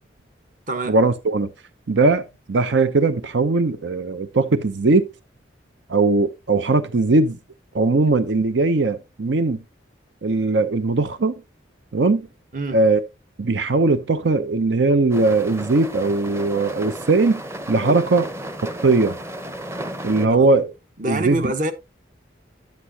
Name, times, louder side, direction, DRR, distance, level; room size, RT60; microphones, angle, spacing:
voice 1, 0.9-1.5 1.9-2.2 2.5-5.1 5.9-7.4 7.7-9.6 10.2-11.3 11.9-12.3 12.7-13.0 13.4-17.4 17.7-18.3 18.6-19.2 20.0-20.7 21.1-21.4, right 3 dB, 80° right, 0.7 m, -19 dB
sound 1, 15.1-20.3, right 1 dB, 15° right, 0.8 m, -33 dB
voice 2, 21.0-21.7, right 2 dB, 45° right, 1.1 m, -25 dB
10.5 x 8.3 x 2.7 m
head